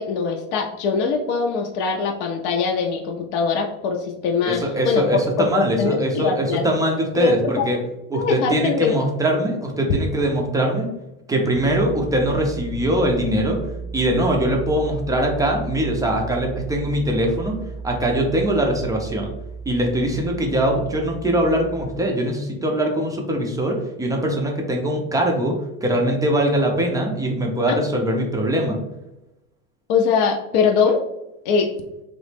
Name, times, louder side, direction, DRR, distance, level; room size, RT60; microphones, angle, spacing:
voice 1, 0.0-4.6 4.8-5.0 5.4-6.6 7.2-7.7 8.1-9.0 29.9-31.0 31.4-31.7, left 5 dB, 50° left, 1 dB, 0.5 m, -22 dB
voice 2, 4.4-7.8 8.1-10.9 11.3-13.7 13.9-17.6 17.8-19.3 19.7-28.8, right 1 dB, 10° right, 1 dB, 0.4 m, -22 dB
sound 1, 11.5-22.0, right 5 dB, 60° right, 0.7 m, -34 dB
3.0 x 2.0 x 3.3 m, 0.90 s
hypercardioid pair, 95°, 43 cm